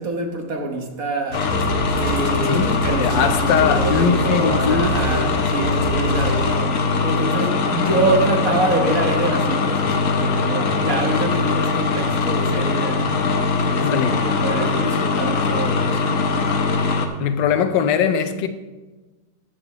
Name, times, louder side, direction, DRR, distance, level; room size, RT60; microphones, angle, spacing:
voice 1, 0.0-1.4 1.9-6.7 7.0-13.2 13.9-16.7, right 2 dB, 55° right, 1.5 m, -26 dB
sound 1, 1.3-17.1, left 4 dB, 55° left, 1.1 m, -21 dB
sound 2, 1.3-6.9, right 7 dB, 90° right, 1.8 m, -30 dB
voice 2, 2.4-4.9 13.8-14.3 17.2-18.5, left 7 dB, 85° left, 1.4 m, -21 dB
14.0 x 7.4 x 3.0 m
omnidirectional pair, 1.9 m